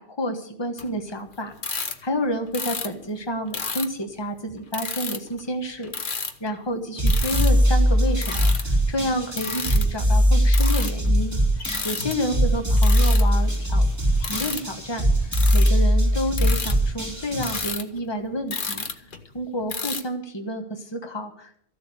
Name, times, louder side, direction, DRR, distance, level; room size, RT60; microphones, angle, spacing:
voice 1, 0.0-13.8 14.2-19.0 19.3-21.6, equal, 25° left, 5 dB, 1.4 m, -30 dB
sound 1, 0.8-0.9 1.5-2.0 2.5-2.9 3.5-3.9 4.7-5.4 5.8-6.5 7.1-7.5 8.1-8.7 9.3-9.9 10.5-11.1 11.6-12.1 12.8-13.2 14.2-14.6 15.3-15.8 16.3-16.7 17.4-19.4 19.7-20.0, left 4 dB, 55° left, 1.2 m, -30 dB
sound 2, 7.0-17.6, equal, 15° right, 3.0 m, -21 dB
14.0 x 7.2 x 9.3 m, 0.65 s
omnidirectional pair, 1.0 m